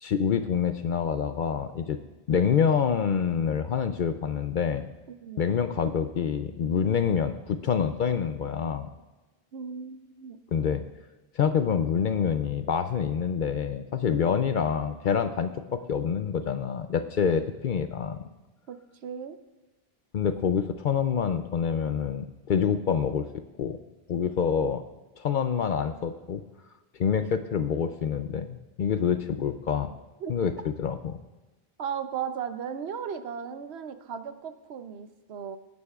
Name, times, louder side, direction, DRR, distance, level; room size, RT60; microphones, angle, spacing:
voice 1, 0.0-2.0 2.3-4.9 5.4-8.9 10.5-10.8 11.3-18.2 20.1-23.3 23.6-23.8 24.1-24.8 25.2-26.4 27.0-29.9 30.3-30.5 30.8-31.2, left 7 dB, 60° left, 9 dB, 0.6 m, -26 dB
voice 2, 5.1-5.5 9.5-10.4 14.1-14.3 18.7-19.4 30.2-30.3 31.8-35.6, right 7 dB, 90° right, 9 dB, 1.0 m, -36 dB
19.5 x 9.7 x 2.4 m, 1.1 s
omnidirectional pair, 1.0 m